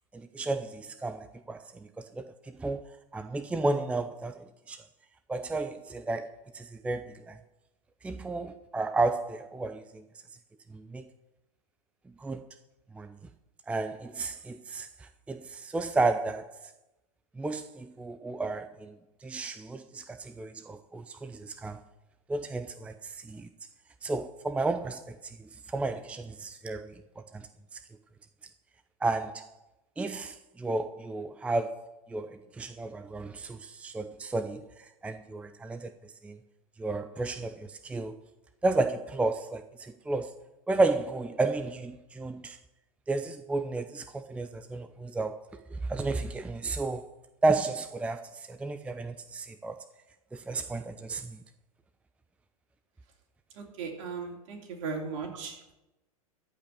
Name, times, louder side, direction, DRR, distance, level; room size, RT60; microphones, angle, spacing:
voice 1, 0.1-1.6 2.0-2.3 2.6-2.8 3.1-4.8 5.3-7.4 8.0-10.0 10.7-11.0 12.2-12.4 12.9-13.1 13.7-16.5 17.4-19.0 19.2-21.8 22.3-23.5 24.0-27.0 27.3-27.5 29.0-29.5 30.0-35.9 36.2-36.4 36.8-38.1 38.6-40.3 40.7-42.6 43.1-45.4 45.9-47.1 47.4-49.7 50.3-51.4, right 3 dB, 5° right, 0.5 m, -32 dB
voice 2, 53.5-55.7, right 5 dB, 55° right, 3.2 m, -37 dB
14.5 x 5.5 x 8.7 m
hypercardioid pair, 100°, 19 cm